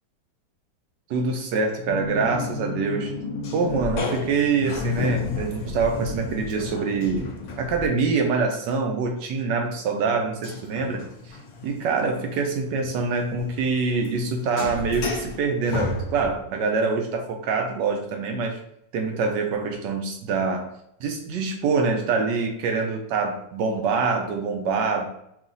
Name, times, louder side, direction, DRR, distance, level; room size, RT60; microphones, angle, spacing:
voice 1, 1.1-3.1 3.5-7.3 7.6-11.1 11.6-18.6 18.9-20.7 21.0-25.1, right 4 dB, 80° right, 3 dB, 1.3 m, -25 dB
sound 1, 1.9-8.2 10.4-16.6, left 3 dB, 65° left, 1.1 m, -32 dB
5.8 x 2.4 x 2.6 m, 0.76 s
omnidirectional pair, 1.9 m